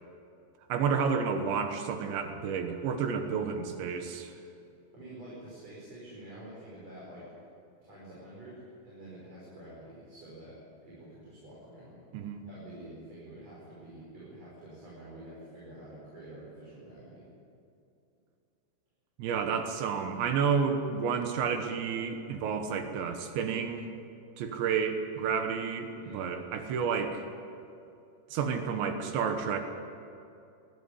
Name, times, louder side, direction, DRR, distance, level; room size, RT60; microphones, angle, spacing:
voice 1, 0.7-4.3 12.1-12.4 19.2-23.9 24.4-27.3 28.3-29.6, right 6 dB, 80° right, 6 dB, 3.5 m, -30 dB
voice 2, 4.9-7.2 7.8-12.0 12.5-17.2 26.0-26.2, right 1 dB, 35° right, -7 dB, 6.3 m, -48 dB
20.0 x 14.0 x 9.8 m, 2.6 s
omnidirectional pair, 5.3 m